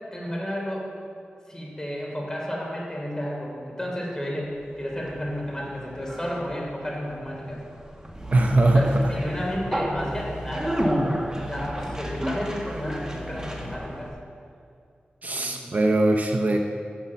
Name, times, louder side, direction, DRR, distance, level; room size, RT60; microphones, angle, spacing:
voice 1, 0.1-0.9 1.5-7.6 8.7-10.9 11.4-14.1 15.3-15.7, equal, 20° left, -3 dB, 3.0 m, -32 dB
Conversation, 4.6-14.1, equal, 20° right, 1.4 m, -31 dB
voice 2, 8.3-8.9 15.2-16.6, right 2 dB, 45° right, 3 dB, 0.7 m, -20 dB
10.0 x 7.2 x 7.0 m, 2.4 s
wide cardioid pair, 100°, 4 cm